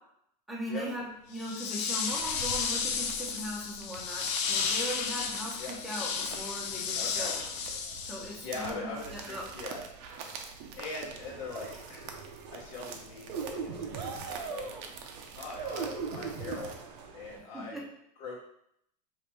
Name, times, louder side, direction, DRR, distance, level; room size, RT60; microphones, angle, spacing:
voice 1, 0.5-5.6 5.8-7.4 8.1-9.4 17.5-17.8, equal, ahead, -4 dB, 0.7 m, -39 dB
sound 1, 1.3-8.6, left 6 dB, 35° left, 0.4 m, -33 dB
sound 2, 1.8-16.8, right 5 dB, 45° right, 0.6 m, -47 dB
voice 2, 6.9-7.3 8.4-9.8 10.7-12.1 12.5-14.8 15.4-16.7 17.1-17.8 18.2-18.4, left 3 dB, 55° left, -5 dB, 1.0 m, -41 dB
sound 3, 11.0-17.4, right 5 dB, 85° right, 0.7 m, -40 dB
4.8 x 3.2 x 3.0 m, 0.74 s
supercardioid pair, 160°, 21 cm